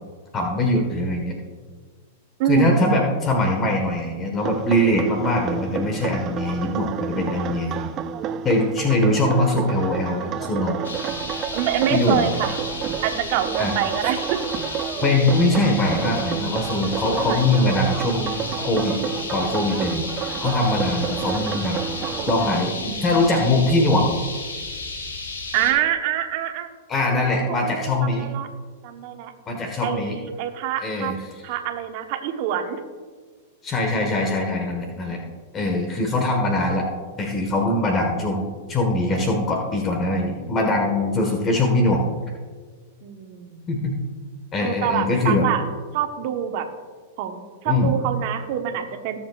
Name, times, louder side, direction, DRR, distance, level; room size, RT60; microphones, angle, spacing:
voice 1, 0.3-1.4 2.5-7.9 8.4-10.8 11.9-12.3 13.6-13.7 15.0-19.0 19.3-20.1 20.4-21.8 22.3-24.2 26.9-28.3 29.5-30.2 30.8-31.4 33.6-35.2 35.5-36.9 37.2-42.1 43.7-44.0 44.5-45.5 47.7-47.9, left 2 dB, 25° left, 2 dB, 1.5 m, -22 dB
voice 2, 2.4-3.0 11.5-12.5 13.0-14.4 17.2-17.8 22.4-23.5 25.5-26.7 27.0-28.5 28.8-29.3 29.8-31.1 31.4-32.8 43.0-43.7 44.6-45.6 45.9-46.7 47.2-49.2, right 10 dB, 55° right, 5 dB, 1.2 m, -26 dB
sound 1, 4.4-22.5, right 9 dB, 35° right, 0.5 m, -30 dB
sound 2, 10.8-25.7, left 3 dB, 80° left, 3.3 m, -33 dB
20.5 x 7.2 x 2.5 m, 1.5 s
hypercardioid pair, 110°, 0 cm